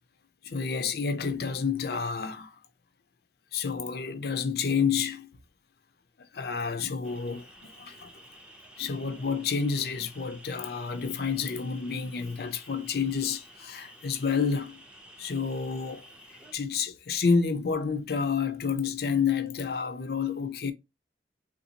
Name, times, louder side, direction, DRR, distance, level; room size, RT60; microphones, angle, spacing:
voice 1, 0.4-2.6 3.5-5.3 6.3-8.1 8.8-14.8 15.2-16.0 16.5-20.7, left 5 dB, 55° left, 0.5 m, -29 dB
sound 1, 7.0-16.5, equal, 5° right, 0.5 m, -52 dB
3.5 x 2.5 x 2.8 m
head